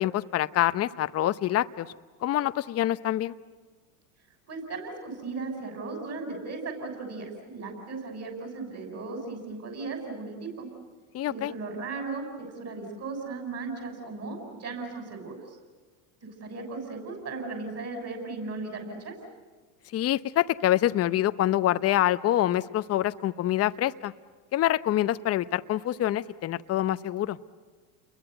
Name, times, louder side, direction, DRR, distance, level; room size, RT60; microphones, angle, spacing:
voice 1, 0.0-1.9 2.2-3.3 11.1-11.5 19.9-24.1 24.5-27.4, left 13 dB, 35° left, 13 dB, 0.8 m, -26 dB
voice 2, 4.5-10.7 11.3-15.6 16.4-19.2, right 3 dB, 35° right, 4 dB, 6.9 m, -36 dB
29.5 x 22.5 x 7.9 m, 1.4 s
supercardioid pair, 105°, 44 cm